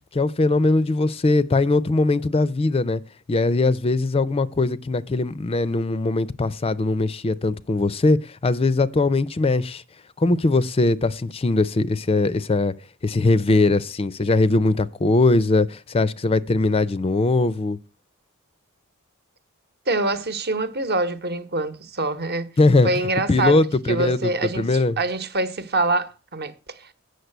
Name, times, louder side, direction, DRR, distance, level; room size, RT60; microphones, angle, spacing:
voice 1, 0.1-3.0 3.3-9.8 10.2-12.7 13.0-17.8 22.6-22.9 23.3-25.0, left 2 dB, 25° left, 0.4 m, -20 dB
voice 2, 19.9-22.5 22.8-23.6 23.9-26.9, right 2 dB, 45° right, 1.0 m, -25 dB
8.1 x 6.6 x 7.7 m
head